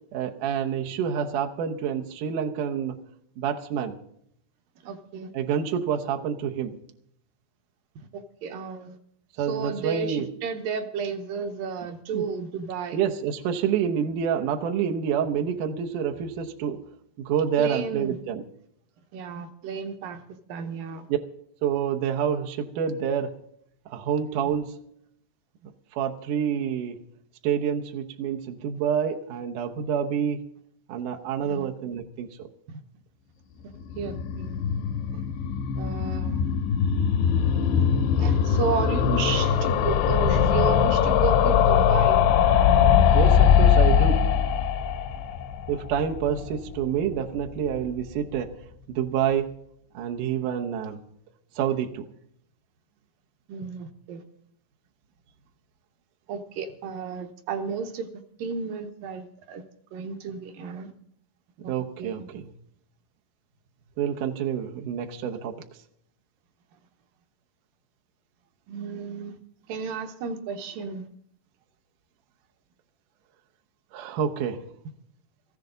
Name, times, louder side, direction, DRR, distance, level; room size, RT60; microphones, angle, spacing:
voice 1, 0.1-3.1 3.4-4.0 5.3-6.8 9.4-10.3 12.1-12.2 12.9-16.8 17.2-18.4 21.6-23.3 23.9-24.8 25.9-27.0 27.4-30.5 30.9-32.5 43.1-44.3 45.7-49.5 49.9-51.0 51.6-52.1 61.7-62.5 64.0-65.7 73.9-74.7, right 8 dB, 85° right, 3 dB, 1.8 m, -28 dB
voice 2, 4.8-5.3 8.0-9.0 9.4-13.0 17.6-18.2 19.1-20.2 20.5-21.1 24.4-24.5 31.4-31.7 32.7-32.8 34.0-34.6 35.1-35.2 35.8-36.6 38.2-42.2 53.5-54.2 56.3-58.1 58.4-59.6 59.9-60.9 61.6-61.7 62.0-62.3 68.7-69.4 69.7-71.1, right 5 dB, 70° right, 7 dB, 2.2 m, -33 dB
sound 1, 33.8-46.9 47.2-47.3 47.5-47.6 47.8-47.9, left 8 dB, 80° left, 3.2 m, -21 dB
18.0 x 14.5 x 3.9 m, 0.70 s
omnidirectional pair, 5.3 m